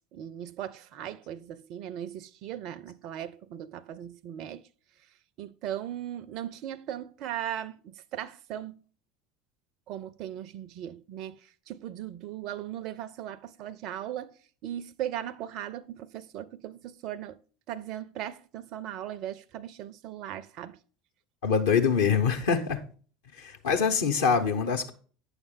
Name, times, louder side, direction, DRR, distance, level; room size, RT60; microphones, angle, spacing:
voice 1, 0.1-4.7 5.4-8.8 9.9-14.4 14.6-17.4 17.7-20.8, right 11 dB, 45° right, 0.4 m, -38 dB
voice 2, 21.4-22.8 23.3-24.9, left 6 dB, 65° left, 0.8 m, -24 dB
9.0 x 6.4 x 3.6 m
figure-of-eight pair, 70°, 0 cm